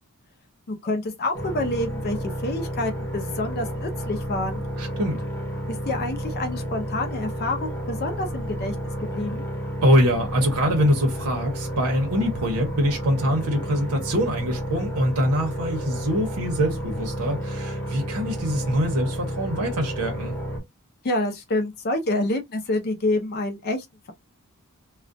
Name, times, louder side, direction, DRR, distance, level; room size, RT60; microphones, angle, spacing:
voice 1, 0.7-4.6 5.7-8.7 9.0-9.4 21.0-24.1, left 2 dB, 45° left, 0.5 m, -28 dB
sound 1, 1.3-20.6, equal, 10° left, 0.8 m, -31 dB
voice 2, 4.8-5.2 9.8-20.3, equal, 90° right, 0.8 m, -24 dB
2.3 x 2.1 x 2.5 m
head